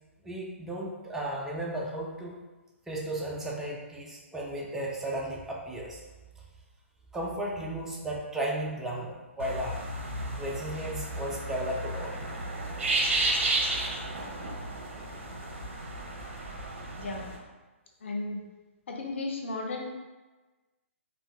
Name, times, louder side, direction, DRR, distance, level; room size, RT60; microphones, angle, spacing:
voice 1, 0.2-2.3 2.9-6.0 7.1-9.8 10.4-12.3, right 1 dB, 5° right, -3 dB, 0.4 m, -34 dB
sound 1, 9.4-17.4, right 2 dB, 60° right, 0.6 m, -32 dB
voice 2, 18.0-18.4 18.9-19.8, left 2 dB, 60° left, 0 dB, 0.6 m, -34 dB
3.8 x 2.3 x 2.3 m, 1.2 s
figure-of-eight pair, 125°, 7 cm